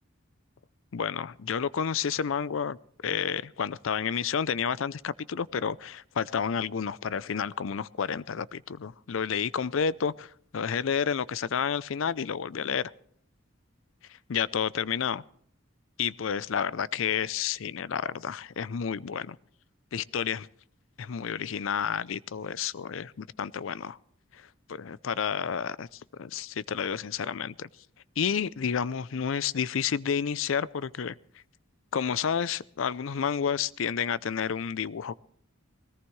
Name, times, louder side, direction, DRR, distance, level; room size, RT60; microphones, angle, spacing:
voice 1, 0.9-2.8 3.0-12.9 14.3-15.2 16.0-19.4 19.9-20.5 21.0-24.0 24.3-27.7 28.2-31.1 31.9-35.2, left 7 dB, 75° left, 0.5 m, -30 dB
20.5 x 18.0 x 3.2 m
head